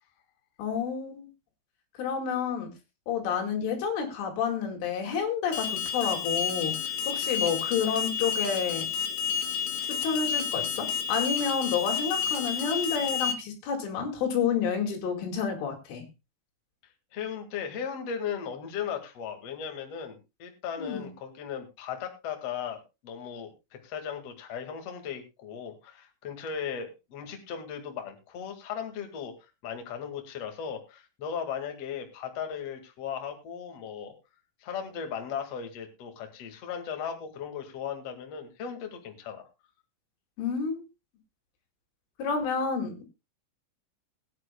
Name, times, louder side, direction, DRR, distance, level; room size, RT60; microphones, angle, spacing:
voice 1, 0.6-1.3 2.0-2.7 3.1-6.7 7.1-8.9 9.9-16.0 20.8-21.1 40.4-40.8 42.2-43.1, left 6 dB, 85° left, 3 dB, 4.7 m, -29 dB
Alarm, 5.5-13.3, left 7 dB, 65° left, 2.7 m, -30 dB
voice 2, 17.1-29.3 29.6-34.1 34.6-39.5, left 7 dB, 50° left, 4 dB, 2.0 m, -37 dB
21.0 x 9.4 x 2.2 m, 0.25 s
omnidirectional pair, 5.5 m